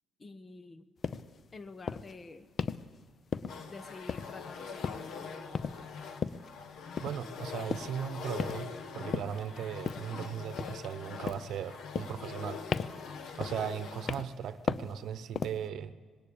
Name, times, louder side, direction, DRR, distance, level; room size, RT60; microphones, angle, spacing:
voice 1, 0.2-0.9 1.5-2.5 3.7-5.7, left 3 dB, 35° left, 12 dB, 1.1 m, -48 dB
sound 1, 1.0-1.3 1.9-2.1 2.6-2.9 3.3-3.7 4.1-4.5 4.8-5.2 5.5-5.8 6.2-6.5 7.0-7.2 7.7-8.0 8.4-8.8 9.1-9.4 9.9-10.2 10.6-11.0 11.3-11.6 12.0-12.4 12.7-13.1 13.4-13.7 14.1-14.4 14.7-15.0 15.4-15.7, left 6 dB, 50° left, 0.6 m, -35 dB
sound 2, 3.5-14.2, left 5 dB, 75° left, 1.4 m, -43 dB
voice 2, 7.0-8.7 8.9-12.6 13.3-15.9, right 8 dB, 75° right, 13 dB, 0.8 m, -37 dB
19.5 x 17.0 x 8.6 m, 1.5 s
cardioid pair, 90°, 0 cm